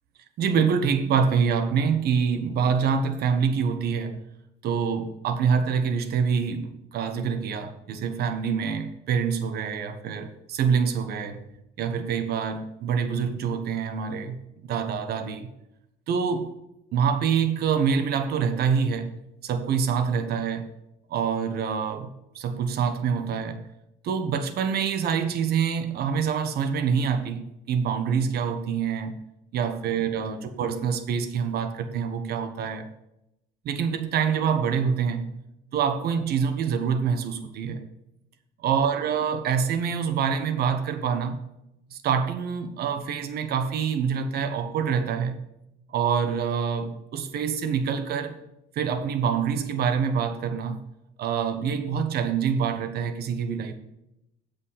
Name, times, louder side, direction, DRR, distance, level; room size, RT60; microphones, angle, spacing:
voice 1, 0.4-4.2 4.6-11.4 11.8-15.5 16.1-16.5 16.9-19.1 19.4-20.7 21.1-22.1 22.3-23.6 24.0-29.1 29.5-32.9 33.6-35.3 35.7-37.9 38.6-41.4 41.9-45.4 45.9-48.4 48.7-50.8 51.2-53.7, right 6 dB, 70° right, 1.2 m, -26 dB
8.4 x 5.2 x 7.3 m
cardioid pair, 110°, 17 cm